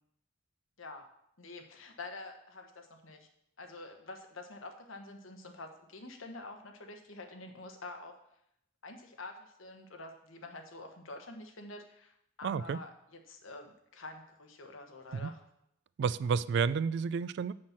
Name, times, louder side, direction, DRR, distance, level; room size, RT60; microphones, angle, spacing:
voice 1, 1.4-3.3 3.6-8.1 8.8-15.4, left 2 dB, 85° left, 4 dB, 1.3 m, -47 dB
voice 2, 12.4-12.8 15.2-15.3 16.0-17.5, right 6 dB, 60° right, 18 dB, 0.3 m, -30 dB
6.4 x 5.8 x 7.3 m, 0.76 s
head